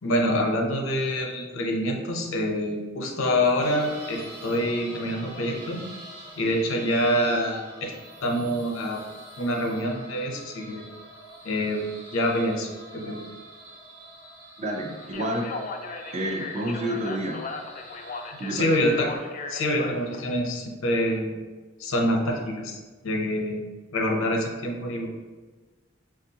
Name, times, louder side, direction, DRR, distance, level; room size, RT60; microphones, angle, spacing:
voice 1, 0.0-5.8 6.4-7.9 8.2-9.0 9.4-10.8 11.4-11.9 12.1-13.2 18.5-19.1 19.5-21.3 21.8-22.8 23.0-23.6 23.9-25.1, equal, 85° left, 1 dB, 0.7 m, -26 dB
sound 1, 3.6-19.2, right 1 dB, 60° right, 0.9 m, -45 dB
voice 2, 14.6-15.5 16.1-17.4 18.4-18.9, right 1 dB, 35° right, 1 dB, 0.5 m, -29 dB
Speech, 15.0-20.4, left 4 dB, 40° left, 0.3 m, -37 dB
5.9 x 2.4 x 2.8 m, 1.3 s
head